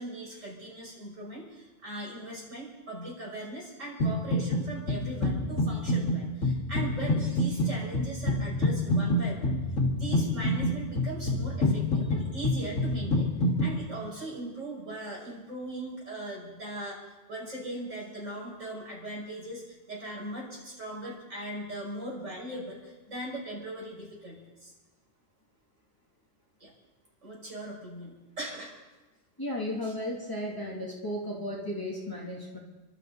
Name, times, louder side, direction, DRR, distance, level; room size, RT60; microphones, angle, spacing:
voice 1, 0.0-9.6 9.9-13.3 13.6-17.0 17.3-24.7 26.6-26.7 27.2-28.7 29.8-29.9, right 1 dB, 80° right, -3 dB, 5.9 m, -39 dB
sound 1, 4.0-4.6 4.9-13.7, left 1 dB, 85° left, 2.4 m, -27 dB
voice 2, 29.4-32.6, left 1 dB, 15° left, -4 dB, 2.9 m, -34 dB
28.5 x 12.5 x 4.0 m, 1.1 s
omnidirectional pair, 1.3 m